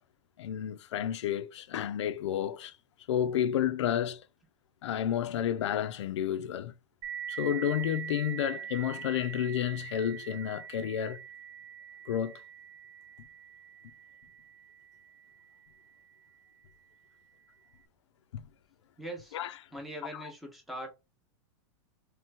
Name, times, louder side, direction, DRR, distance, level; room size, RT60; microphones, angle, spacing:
voice 1, 0.4-2.7 3.1-4.2 4.8-6.7 7.3-11.2 12.1-12.4 18.3-18.4 19.3-19.5 20.1-20.2, left 10 dB, 85° left, 0.5 m, -31 dB
sound 1, 7.0-16.3, right 9 dB, 80° right, 0.7 m, -44 dB
voice 2, 19.0-19.4 19.7-20.9, right 1 dB, ahead, 0.9 m, -41 dB
3.3 x 3.0 x 3.4 m
supercardioid pair, 155°, 15 cm